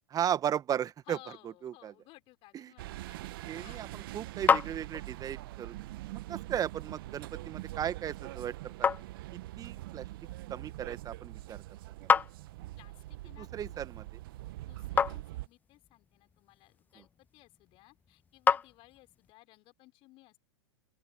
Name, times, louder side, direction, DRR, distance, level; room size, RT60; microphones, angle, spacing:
voice 1, 0.1-1.2 1.6-1.9 2.5-2.7 3.5-5.8 6.1-8.9 9.3-10.1 10.5-11.6 12.0-12.1 13.4-14.1 17.0-17.1, right 9 dB, 25° right, 1.8 m, -36 dB
voice 2, 1.1-3.3 3.6-3.8 12.8-13.7 14.7-20.4, left 20 dB, 40° left, 5.1 m, -57 dB
sound 1, 2.8-15.5, right 17 dB, 55° right, 1.5 m, -43 dB
sound 2, 3.5-19.3, left 6 dB, 15° left, 0.3 m, -35 dB
open air
hypercardioid pair, 100°, 14 cm